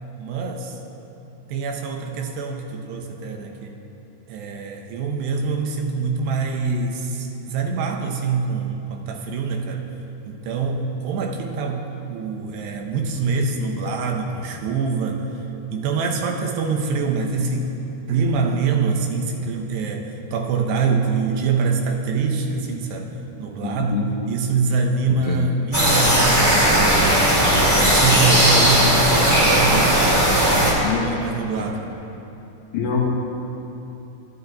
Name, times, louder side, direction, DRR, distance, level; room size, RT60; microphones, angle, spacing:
voice 1, 0.2-0.8 1.5-3.8 4.3-9.8 10.3-15.3 15.7-17.7 18.1-27.3 27.8-31.9, right 4 dB, 75° right, 2 dB, 3.0 m, -25 dB
voice 2, 23.6-24.1 25.1-25.5 30.8-31.1 32.7-33.1, left 6 dB, 65° left, -2 dB, 2.4 m, -24 dB
sound 1, 25.7-30.7, right 1 dB, 10° right, 1.5 m, -17 dB
25.0 x 12.0 x 4.1 m, 3.0 s
omnidirectional pair, 5.3 m